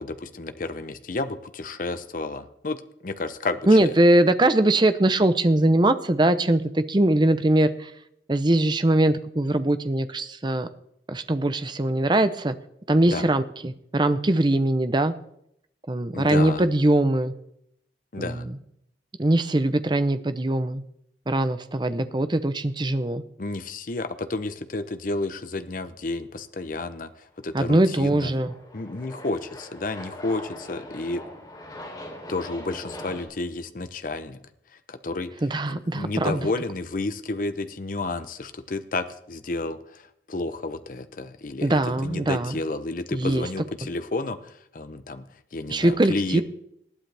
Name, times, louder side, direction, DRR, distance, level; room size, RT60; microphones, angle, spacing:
voice 1, 0.0-3.9 13.1-13.3 16.1-16.6 18.1-18.5 23.4-28.3 28.7-31.2 32.3-34.4 34.9-35.3 35.7-45.2 45.5-46.4, left 2 dB, 50° left, 11 dB, 0.7 m, -31 dB
voice 2, 3.7-7.9 8.3-10.7 11.1-12.6 12.9-15.1 15.9-17.3 18.2-18.6 19.2-20.8 21.3-23.2 27.5-28.5 35.4-36.5 41.6-42.5 43.1-43.5 45.7-46.4, right 1 dB, 25° right, 11 dB, 0.6 m, -21 dB
Aircraft, 27.5-33.2, left 1 dB, 20° left, 3.3 m, -41 dB
19.5 x 12.0 x 3.4 m, 0.75 s
head